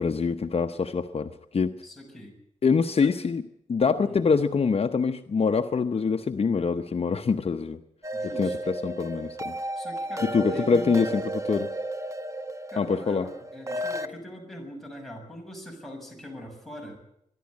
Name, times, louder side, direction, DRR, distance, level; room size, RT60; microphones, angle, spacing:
voice 1, 0.0-1.8 2.6-3.4 3.7-7.8 8.4-9.5 10.2-11.7 12.8-13.3, left 5 dB, 50° left, 7 dB, 0.8 m, -25 dB
voice 2, 1.8-2.4 3.0-3.1 4.0-4.2 8.1-8.8 9.7-11.3 12.7-17.0, equal, ahead, 0 dB, 6.6 m, -42 dB
sound 1, 8.0-14.1, right 1 dB, 25° right, 1.1 m, -33 dB
24.0 x 11.5 x 9.7 m, 0.77 s
wide cardioid pair, 120°, 13 cm